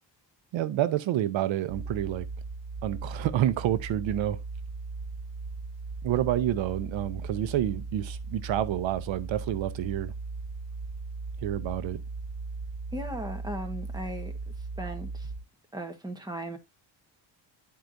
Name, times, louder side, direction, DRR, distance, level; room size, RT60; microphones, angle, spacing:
voice 1, 0.5-2.3 2.8-4.4 6.0-10.1 11.4-12.0, right 12 dB, 75° right, 0.7 m, -28 dB
sound 1, 1.7-15.4, right 3 dB, 50° right, 2.8 m, -38 dB
voice 2, 12.9-14.3 14.8-15.3 15.7-16.6, right 1 dB, 10° right, 1.2 m, -37 dB
12.0 x 4.6 x 2.6 m
cardioid pair, 125°, 46 cm